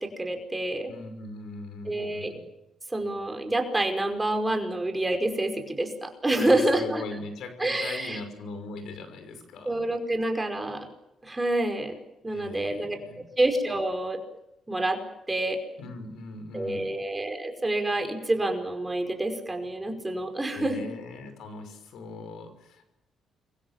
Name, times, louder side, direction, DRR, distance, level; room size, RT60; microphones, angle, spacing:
voice 1, 0.0-0.9 1.9-2.3 2.9-7.0 7.6-8.2 9.7-10.9 11.2-12.0 12.2-13.0 13.4-14.2 14.7-15.0 15.3-15.6 16.5-20.9, right 1 dB, 15° right, 5 dB, 5.5 m, -27 dB
voice 2, 0.9-2.4 6.3-9.8 12.3-13.3 15.8-17.0 20.5-22.9, left 3 dB, 75° left, 8 dB, 5.7 m, -40 dB
29.0 x 24.0 x 7.6 m, 0.88 s
cardioid pair, 90°, 0 cm